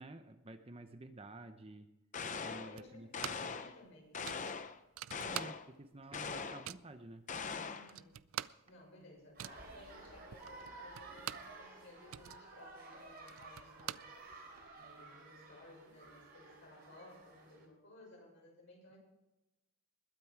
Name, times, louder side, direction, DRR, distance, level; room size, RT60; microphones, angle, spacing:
voice 1, 0.0-1.9 2.4-3.6 5.2-7.2, right 2 dB, 25° right, 8 dB, 0.7 m, -51 dB
sound 1, 2.1-2.8 3.1-3.8 4.1-4.8 5.1-5.7 6.1-6.7 7.3-7.9, left 5 dB, 35° left, 0.7 m, -41 dB
voice 2, 2.5-4.4 7.7-8.1 8.7-14.0 14.8-19.0, left 1 dB, 55° left, -1 dB, 6.6 m, -58 dB
sound 2, 2.8-3.6 3.9-4.0 4.2-5.9 6.2-6.9 7.5-7.6 7.8-11.6 11.9-14.7, right 11 dB, 70° right, 0.4 m, -46 dB
sound 3, 9.4-17.7, right 3 dB, 45° right, 3.9 m, -53 dB
20.5 x 9.1 x 4.7 m, 0.97 s
head